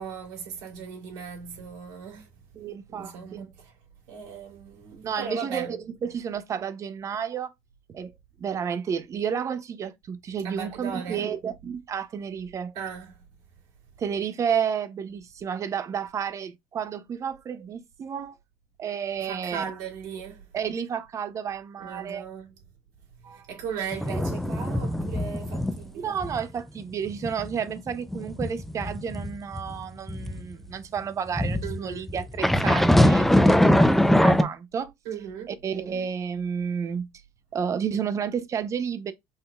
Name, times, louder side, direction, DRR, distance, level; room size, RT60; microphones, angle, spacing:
voice 1, 0.0-2.3 2.9-3.7 4.1-5.8 10.4-11.3 12.7-13.2 19.2-20.5 21.8-22.5 23.3-26.2 31.6-32.1 35.0-35.5, right 7 dB, 80° right, 3.1 m, -37 dB
voice 2, 2.5-3.5 5.0-7.5 7.9-8.1 8.4-12.7 14.0-18.4 18.8-19.6 20.5-22.3 23.2-23.5 25.9-34.9 35.5-37.1 37.5-39.1, right 7 dB, 40° right, 0.8 m, -31 dB
sound 1, 23.9-25.8 26.2-26.4 26.8-30.4 31.4-34.4, left 1 dB, 5° left, 0.6 m, -22 dB
5.4 x 3.9 x 2.4 m
supercardioid pair, 85°, 8 cm